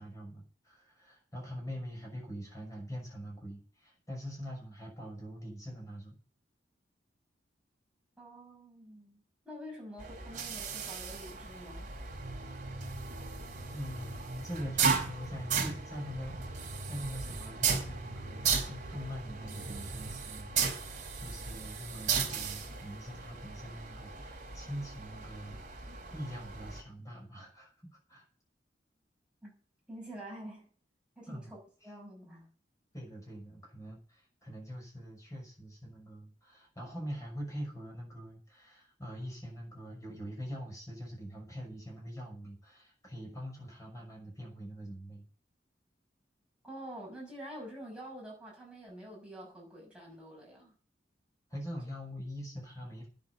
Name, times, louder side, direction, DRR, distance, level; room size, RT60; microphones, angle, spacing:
voice 1, 0.0-6.1 13.7-27.7 28.1-28.3 31.3-31.5 32.9-45.2 51.5-53.1, equal, 20° left, 6.2 m, -43 dB
voice 2, 8.2-11.9 29.4-29.5 29.9-30.7 31.2-31.6 31.8-32.5 46.6-50.7, equal, 5° right, 6.3 m, -47 dB
sound 1, 10.0-26.8, right 6 dB, 45° right, 3.5 m, -36 dB
sound 2, 12.1-20.2, right 1 dB, 85° right, 2.5 m, -45 dB
9.8 x 7.9 x 8.5 m
head